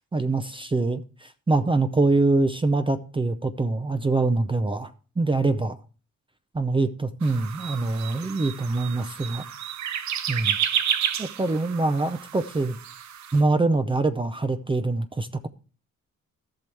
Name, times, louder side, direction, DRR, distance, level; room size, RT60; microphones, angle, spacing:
voice 1, 0.1-5.8 6.5-9.4 10.3-10.6 11.2-12.8 13.3-15.5, right 3 dB, 15° right, 0.6 m, -24 dB
sound 1, 7.2-13.4, right 9 dB, 65° right, 0.8 m, -31 dB
14.0 x 6.1 x 3.4 m
cardioid pair, 90°, 30 cm